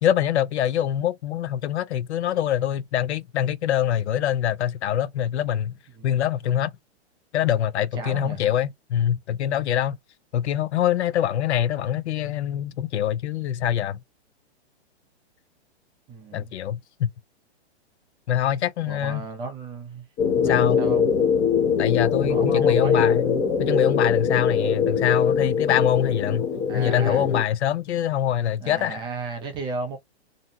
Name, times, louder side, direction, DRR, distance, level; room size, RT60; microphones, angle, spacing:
voice 1, 0.0-5.7 6.0-6.7 7.3-10.0 10.3-14.0 16.3-17.1 18.3-19.2 20.4-20.8 21.8-26.5 26.7-29.0, left 10 dB, 75° left, 0.5 m, -24 dB
voice 2, 8.0-8.4 16.1-16.5 18.8-20.1 20.4-21.1 22.2-23.1 26.7-27.2 28.6-30.0, right 4 dB, 15° right, 0.4 m, -34 dB
sound 1, 20.2-27.4, left 6 dB, 25° left, 0.6 m, -22 dB
2.6 x 2.1 x 2.7 m
hypercardioid pair, 135°, 34 cm